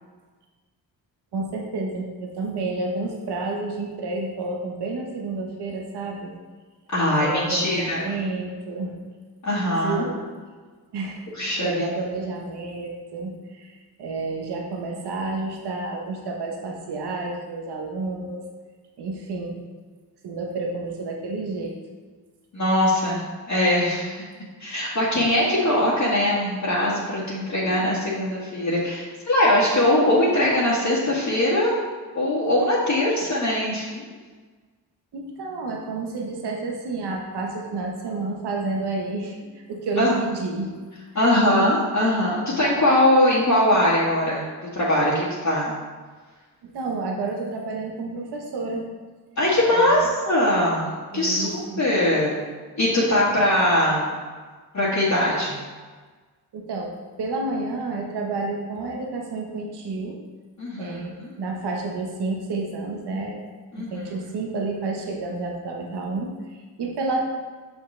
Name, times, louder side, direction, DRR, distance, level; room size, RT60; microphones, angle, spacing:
voice 1, 1.3-6.3 7.2-8.9 9.7-10.2 10.9-11.2 11.6-18.4 19.0-19.6 20.2-21.7 35.1-40.7 41.1-41.3 46.6-48.9 49.7-50.1 51.1-51.9 56.5-60.2 60.8-63.4 63.7-67.2, right 3 dB, 80° right, 0 dB, 1.1 m, -30 dB
voice 2, 6.9-8.0 9.4-10.0 11.3-11.7 22.5-23.2 23.5-24.2 24.6-31.7 32.1-34.0 40.0-40.1 41.1-44.4 44.7-45.7 49.4-52.4 52.8-54.2 54.7-55.6 60.6-61.3 63.7-64.0, left 1 dB, 50° left, -9 dB, 1.7 m, -21 dB
6.4 x 6.0 x 3.3 m, 1.4 s
cardioid pair, 80°, 39 cm